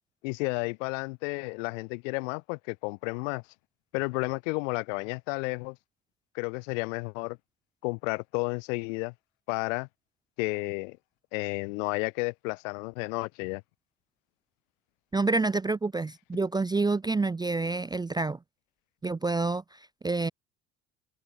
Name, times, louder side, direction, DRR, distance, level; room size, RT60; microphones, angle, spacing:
voice 1, 0.2-3.4 3.9-5.8 6.3-7.4 7.8-9.1 9.5-9.9 10.4-11.0 11.3-13.6, left 32 dB, 65° left, 2.6 m, -32 dB
voice 2, 15.1-18.4 19.0-20.3, right 3 dB, 10° right, 0.6 m, -28 dB
hypercardioid pair, 65°, 40 cm